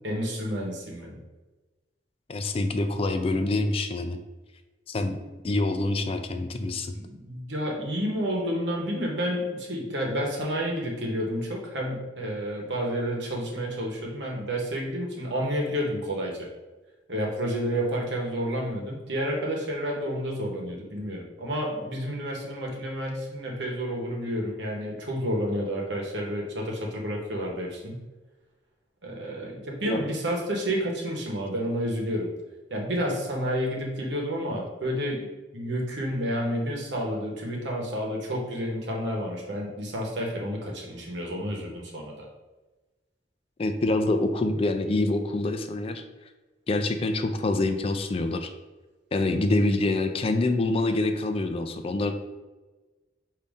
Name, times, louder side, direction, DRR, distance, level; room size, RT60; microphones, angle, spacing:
voice 1, 0.0-1.2 6.9-16.5 17.1-28.0 29.0-32.3 32.7-35.3 35.5-42.3, equal, 80° right, -1 dB, 1.1 m, -30 dB
voice 2, 2.3-4.2 4.9-5.2 5.4-6.9 29.9-30.0 43.6-46.0 46.7-48.5 49.1-52.1, left 2 dB, 35° left, 7 dB, 0.4 m, -26 dB
5.2 x 2.7 x 3.6 m, 1.2 s
head